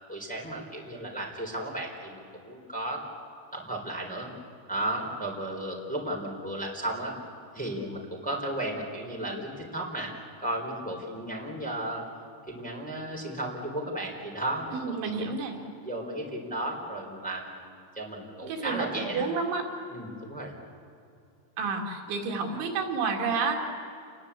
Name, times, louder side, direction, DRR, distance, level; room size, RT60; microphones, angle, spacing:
voice 1, 0.1-3.0 3.5-4.3 4.7-7.1 7.5-10.1 10.4-12.0 12.5-15.3 15.8-17.7 17.9-19.3 19.9-20.5, right 1 dB, ahead, -1 dB, 3.3 m, -34 dB
voice 2, 14.7-15.6 18.4-19.7 21.6-23.6, right 4 dB, 90° right, 1 dB, 5.0 m, -30 dB
29.0 x 20.5 x 8.4 m, 2.6 s
omnidirectional pair, 5.1 m